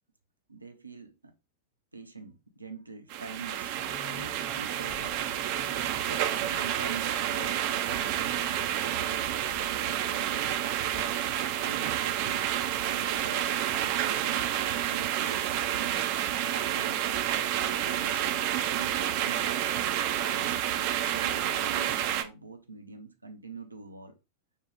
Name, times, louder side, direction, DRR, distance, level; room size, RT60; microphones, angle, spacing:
voice 1, 0.5-1.3 1.9-5.2 6.0-11.1 11.6-12.5 12.8-14.5 14.9-16.0 16.3-17.3 17.8-18.4 18.8-19.7 20.1-20.6 21.0-24.2, right 4 dB, 80° right, 0.7 m, -45 dB
sound 1, 3.1-22.2, right 11 dB, 45° right, 0.7 m, -29 dB
sound 2, 3.7-7.1 7.5-11.7 12.0-12.4 12.9-13.3 13.6-13.9 14.5-14.6 14.9-15.0 16.2-16.3 17.0-17.8 19.0-19.2 19.5-19.6 20.0-20.1, left 7 dB, 30° left, 1.2 m, -52 dB
6.4 x 2.3 x 3.5 m
figure-of-eight pair, 90°, 0 cm